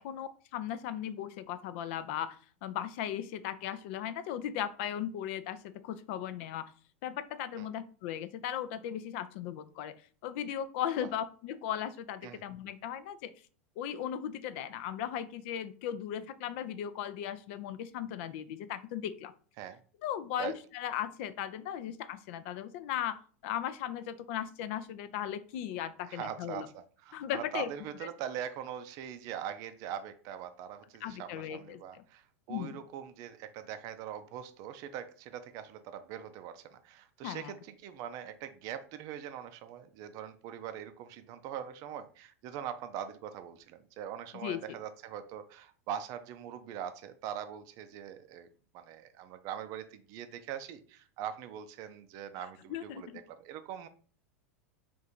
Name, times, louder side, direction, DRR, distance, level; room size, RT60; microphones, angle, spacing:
voice 1, 0.0-6.7 7.0-9.9 10.2-13.3 13.8-19.3 20.0-26.7 27.1-27.7 31.0-32.0 32.5-32.8 37.2-37.5 44.4-44.8 52.7-53.2, left 10 dB, 60° left, 13 dB, 0.4 m, -37 dB
voice 2, 26.1-48.5 48.7-53.9, right 9 dB, 50° right, 9 dB, 0.4 m, -42 dB
3.6 x 2.5 x 4.3 m, 0.41 s
hypercardioid pair, 95°, 8 cm